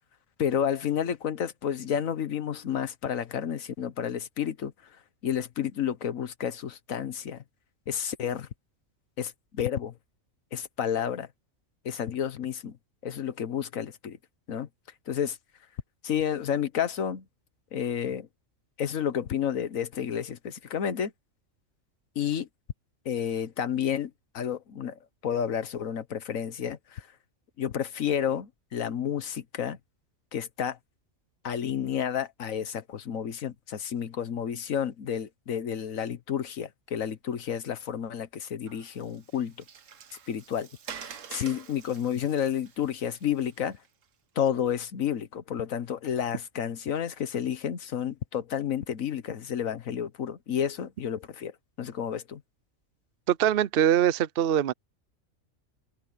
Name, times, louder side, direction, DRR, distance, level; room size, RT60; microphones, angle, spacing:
voice 1, 0.4-4.7 5.2-7.4 7.9-8.5 9.2-9.9 10.5-11.3 11.8-12.8 13.0-14.2 14.5-14.7 15.1-15.4 16.0-17.2 17.7-18.3 18.8-21.1 22.1-22.5 23.0-27.1 27.6-29.8 30.3-30.8 31.4-39.5 40.3-43.8 44.3-51.5 51.8-52.4, left 9 dB, 85° left, 1.5 m, -31 dB
Water, 38.7-44.0, right 7 dB, 75° right, 1.5 m, -47 dB
voice 2, 53.3-54.7, right 10 dB, 55° right, 0.7 m, -23 dB
open air
omnidirectional pair, 1.4 m